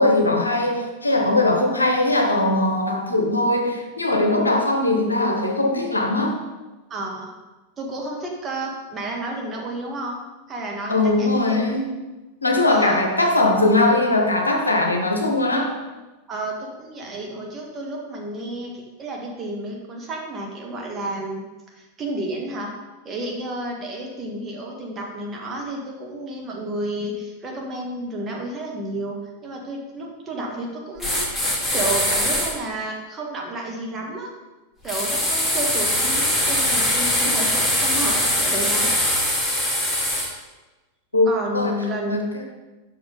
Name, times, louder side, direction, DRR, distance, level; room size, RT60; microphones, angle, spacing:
voice 1, 0.0-6.4 10.9-12.0 12.4-15.7 41.1-41.3 41.5-41.8 42.1-42.4, left 2 dB, 80° left, 3 dB, 0.9 m, -20 dB
voice 2, 6.9-7.3 7.8-10.2 10.5-11.7 12.7-13.0 16.3-21.4 21.7-22.7 23.0-29.2 29.4-31.2 31.7-34.3 34.8-38.9 41.2-42.2, right 1 dB, 25° right, -1 dB, 1.5 m, -31 dB
sound 1, 31.0-32.5 34.9-40.3, left 1 dB, 5° left, 1.9 m, -22 dB
5.8 x 4.9 x 5.2 m, 1.2 s
figure-of-eight pair, 90°, 0 cm